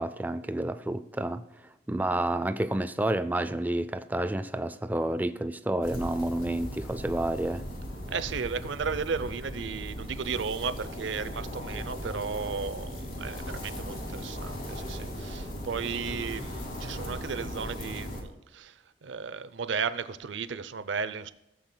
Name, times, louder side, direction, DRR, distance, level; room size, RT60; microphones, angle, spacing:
voice 1, 0.0-1.4 1.9-7.7, right 1 dB, 10° right, 0.3 m, -29 dB
sound 1, 5.8-18.2, equal, 50° left, 2.1 m, -38 dB
voice 2, 8.1-21.3, right 5 dB, 75° right, 0.5 m, -34 dB
15.0 x 7.9 x 2.2 m
head